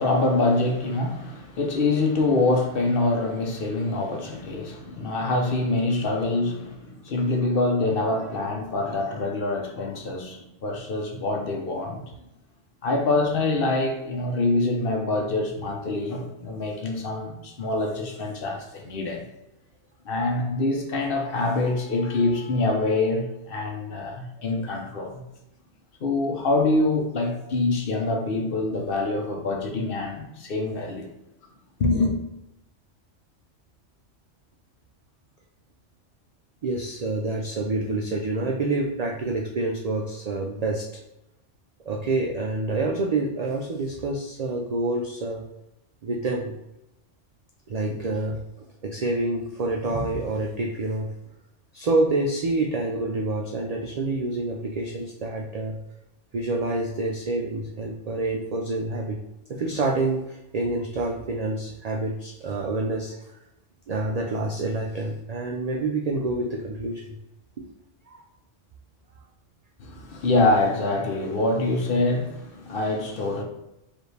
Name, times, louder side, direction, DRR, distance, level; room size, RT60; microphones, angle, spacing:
voice 1, 0.0-12.0 12.8-19.2 20.1-25.2 26.0-31.1 31.8-32.2 69.8-73.4, left 2 dB, 55° left, 0.8 m, -25 dB
voice 2, 36.6-41.0 41.9-45.4 46.0-46.5 47.7-48.4 48.8-51.1 51.7-55.8 56.3-59.2 59.5-63.1 63.9-67.1 67.6-67.7 68.1-68.2, right 2 dB, 85° right, 0.3 m, -27 dB
4.8 x 2.5 x 3.2 m
omnidirectional pair, 1.3 m